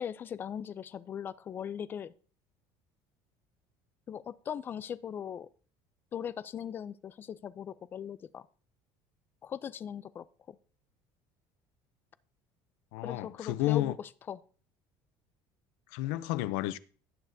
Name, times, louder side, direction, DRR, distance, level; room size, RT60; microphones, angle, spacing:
voice 1, 0.0-2.1 4.1-5.5 6.1-8.5 9.4-10.6 13.0-14.4, left 8 dB, 25° left, 0.3 m, -39 dB
voice 2, 12.9-14.0 15.9-16.8, left 15 dB, 80° left, 0.5 m, -31 dB
17.5 x 6.4 x 2.7 m
cardioid pair, 175°, 9 cm